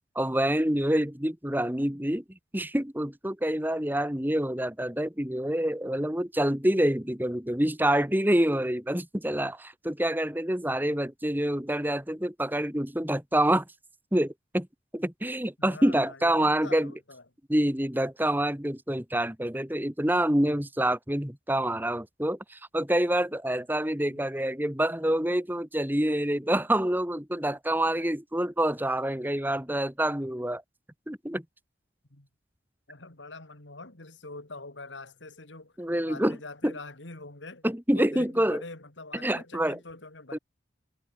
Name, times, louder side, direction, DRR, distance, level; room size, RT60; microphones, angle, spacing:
voice 1, 0.2-2.2 2.5-13.7 14.1-14.7 14.9-16.9 17.5-30.6 31.1-31.4 35.8-36.4 36.6-36.7 37.6-38.6 39.1-39.8 40.3-40.4, right 1 dB, 10° right, 1.9 m, -27 dB
voice 2, 15.6-17.2 24.1-24.3 32.1-32.3 32.9-35.7 36.1-37.7 37.9-40.4, left 3 dB, 75° left, 3.3 m, -44 dB
head